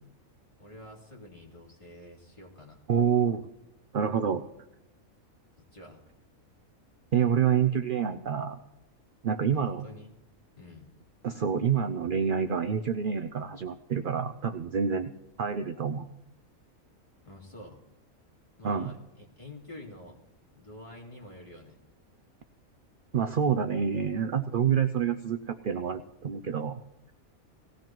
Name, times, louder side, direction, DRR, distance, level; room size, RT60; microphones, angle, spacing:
voice 1, 0.6-2.8 5.7-6.0 9.5-10.1 10.5-10.9 17.2-17.8 18.6-20.2 20.5-21.8, left 1 dB, 20° left, -2 dB, 2.6 m, -48 dB
voice 2, 2.9-3.4 3.9-4.4 7.1-8.6 9.2-9.9 11.2-15.1 15.4-16.1 18.6-18.9 23.1-26.8, right 7 dB, 55° right, 9 dB, 0.6 m, -27 dB
18.5 x 16.0 x 3.0 m, 0.92 s
omnidirectional pair, 1.5 m